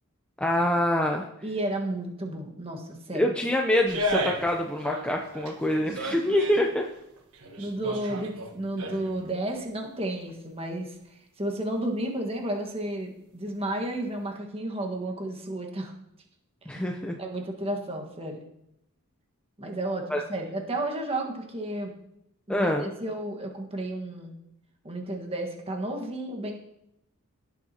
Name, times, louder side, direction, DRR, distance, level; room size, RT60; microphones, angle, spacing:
voice 1, 0.4-1.3 3.1-6.9 16.7-17.2 20.1-20.2 22.5-22.9, left 1 dB, 5° left, 1 dB, 0.6 m, -25 dB
voice 2, 1.4-3.3 5.9-6.0 7.6-10.9 11.4-15.9 16.6-16.9 17.2-18.4 19.6-21.9 22.5-24.3 24.8-26.5, right 1 dB, 25° right, 2 dB, 1.5 m, -32 dB
sound 1, 3.9-4.6 4.8-6.6 7.2-9.2 9.6-9.7, equal, 80° right, 1.4 m, -33 dB
17.5 x 7.3 x 2.9 m, 0.79 s
head